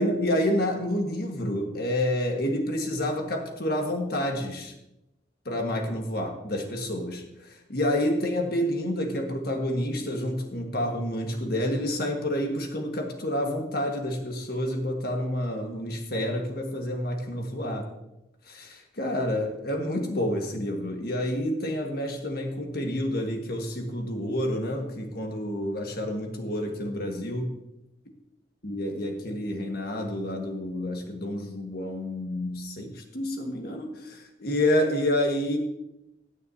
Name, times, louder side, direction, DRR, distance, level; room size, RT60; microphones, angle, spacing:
voice 1, 0.0-4.7 5.4-17.9 18.5-27.6 28.6-35.6, left 1 dB, 55° left, 3 dB, 1.7 m, -29 dB
16.5 x 9.2 x 2.8 m, 0.88 s
head